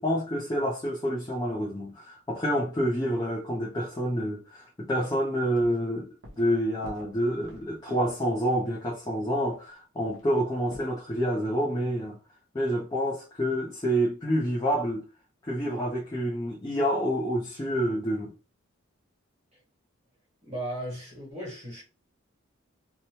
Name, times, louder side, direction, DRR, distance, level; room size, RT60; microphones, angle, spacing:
voice 1, 0.0-12.2 12.5-15.1 15.4-18.3, equal, 20° left, 0.4 m, -28 dB
sound 1, 5.5-5.9 6.2-6.5 6.8-8.2 9.2-9.3 9.5-9.6 10.0-10.9, equal, 65° right, 0.9 m, -48 dB
voice 2, 20.4-21.8, right 1 dB, 30° right, 1.4 m, -36 dB
2.7 x 2.2 x 2.9 m
head